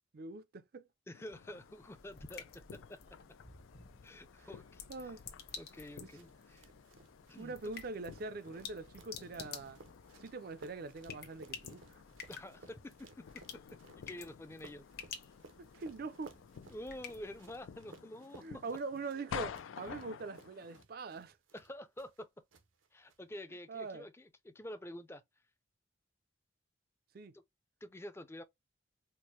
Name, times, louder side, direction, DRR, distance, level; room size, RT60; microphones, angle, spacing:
voice 1, 0.1-0.8 4.4-4.5 4.9-5.2 7.4-9.8 10.2-12.0 15.6-16.3 18.4-21.4 23.7-24.1 27.1-27.3, right 3 dB, 50° right, 0.4 m, -43 dB
sound 1, 1.1-20.8, left 7 dB, 85° left, 0.4 m, -52 dB
voice 2, 1.1-3.0 4.0-5.1 5.6-6.7 7.3-7.6 12.3-13.2 13.5-14.9 16.7-18.6 21.5-22.3 22.9-25.2 27.3-27.4 27.8-28.4, left 1 dB, 15° left, 0.4 m, -48 dB
sound 2, 1.4-17.8, left 6 dB, 50° left, 1.0 m, -52 dB
sound 3, 5.5-22.2 22.5-23.2, right 3 dB, 85° right, 0.7 m, -60 dB
4.5 x 2.1 x 3.1 m
head